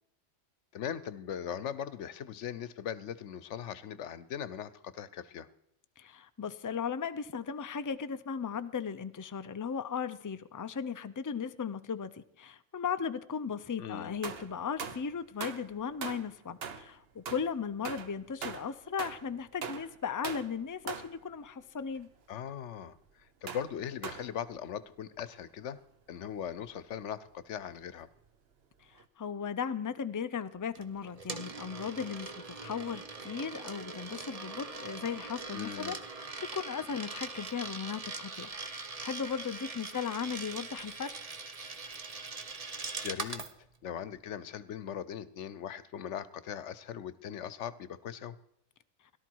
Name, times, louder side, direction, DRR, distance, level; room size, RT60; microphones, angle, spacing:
voice 1, 0.7-5.5 13.8-14.2 22.3-23.0 23.4-25.8 26.1-28.1 35.5-36.0 42.5-42.7 43.0-43.4 43.8-48.4, left 9 dB, 85° left, 16 dB, 1.1 m, -39 dB
voice 2, 6.0-22.1 29.2-41.2, left 6 dB, 25° left, 11 dB, 0.4 m, -37 dB
sound 1, 14.2-15.1 15.4-15.7 16.0-16.9 17.2-19.3 19.6-20.0 20.2-20.5 20.9-21.2 21.8-22.0 23.5-23.7 24.0-24.4 25.3-25.4 25.6-25.7 29.0-29.1, right 6 dB, 60° right, 1.1 m, -41 dB
Coin (dropping), 30.8-43.5, right 4 dB, 35° right, 0.9 m, -42 dB
17.5 x 12.5 x 4.6 m, 0.78 s
omnidirectional pair, 1.2 m